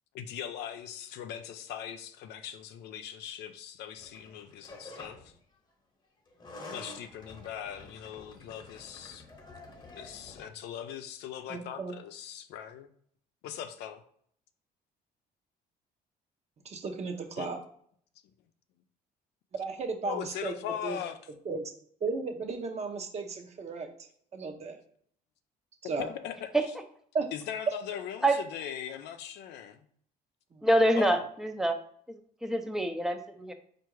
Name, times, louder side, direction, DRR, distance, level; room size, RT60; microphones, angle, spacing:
voice 1, 0.1-5.3 6.7-9.2 9.9-12.9 13.4-14.0 17.4-17.5 20.0-21.2 26.0-26.5 27.3-29.8 31.0-31.2, left 9 dB, 80° left, 8 dB, 0.5 m, -40 dB
sound 1, 4.0-5.4 6.3-10.5, left 2 dB, 25° left, 1.0 m, -49 dB
voice 2, 11.5-11.9 16.6-17.6 19.5-20.5 20.8-21.0 21.4-21.7 22.0-23.9 24.3-24.8 25.8-26.1 27.1-27.3 30.5-30.6, right 4 dB, 40° right, 4 dB, 0.8 m, -34 dB
voice 3, 30.6-31.8 32.1-33.5, right 1 dB, 5° right, 5 dB, 0.5 m, -26 dB
4.6 x 2.5 x 4.6 m, 0.63 s
cardioid pair, 110°, 17 cm